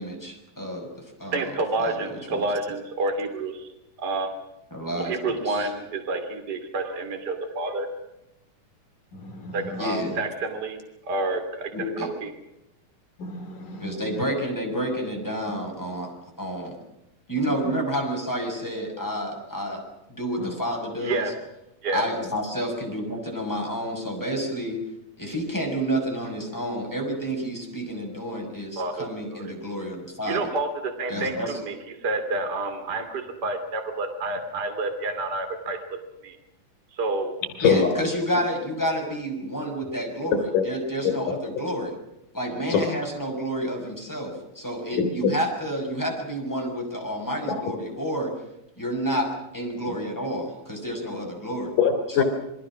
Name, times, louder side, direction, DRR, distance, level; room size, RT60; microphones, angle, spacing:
voice 1, 0.0-1.4 1.8-2.4 4.7-5.7 9.8-10.2 11.7-12.1 13.8-16.1 16.4-16.8 17.3-19.8 20.1-21.3 21.9-24.8 25.2-30.4 31.1-31.6 37.6-41.9 42.3-48.3 48.8-51.7 52.1-52.2, equal, 5° left, 1 dB, 6.2 m, -29 dB
voice 2, 1.3-3.7 4.0-4.3 4.9-7.9 9.5-10.8 11.1-11.7 12.2-12.3 21.0-21.3 21.8-22.0 28.8-29.5 30.3-31.7 32.0-35.8 36.2-36.4 36.9-37.3, right 2 dB, 30° right, 5 dB, 3.1 m, -29 dB
voice 3, 9.2-9.6 13.2-13.9 20.4-20.5 37.6-37.9 40.5-40.6 42.7-42.8 45.0-45.3 51.8-52.2, left 7 dB, 85° left, 7 dB, 5.3 m, -23 dB
28.5 x 22.5 x 6.2 m, 0.86 s
omnidirectional pair, 3.7 m